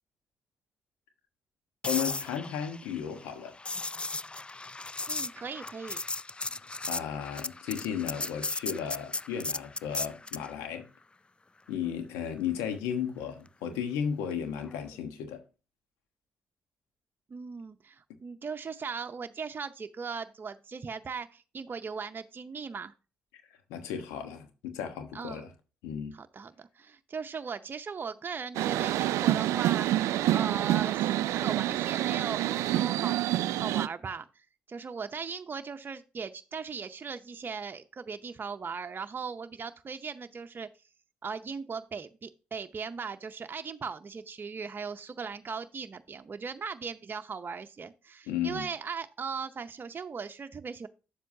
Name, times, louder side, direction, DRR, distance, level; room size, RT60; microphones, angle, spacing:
voice 1, 1.8-3.5 6.5-6.6 6.9-10.9 11.7-15.4 23.7-25.5 25.8-26.1 48.3-48.7, left 8 dB, 90° left, 1.2 m, -34 dB
sound 1, 1.8-10.5 14.7-14.9, left 3 dB, 20° left, 0.3 m, -36 dB
voice 2, 5.1-6.0 17.3-22.9 25.1-25.4 26.1-40.7 41.2-50.9, right 5 dB, 45° right, 0.7 m, -38 dB
sound 2, 28.5-33.9, right 14 dB, 80° right, 0.3 m, -27 dB
8.8 x 7.5 x 2.8 m
supercardioid pair, 50°, 5 cm